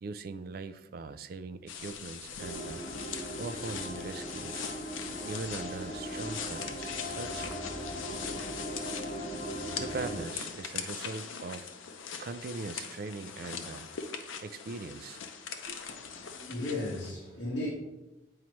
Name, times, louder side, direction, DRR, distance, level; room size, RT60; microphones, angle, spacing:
voice 1, 0.0-2.8 3.4-4.7 5.2-7.5 9.6-11.7 12.2-13.9 14.4-15.2 15.7-15.8, right 3 dB, 50° right, 12 dB, 0.3 m, -40 dB
sound 1, 1.7-17.1, left 6 dB, 90° left, 0.6 m, -41 dB
sound 2, 2.4-10.2, equal, 20° left, 1.5 m, -39 dB
voice 2, 15.8-17.7, left 2 dB, 60° left, -9 dB, 1.7 m, -36 dB
8.5 x 4.6 x 3.0 m, 0.99 s
head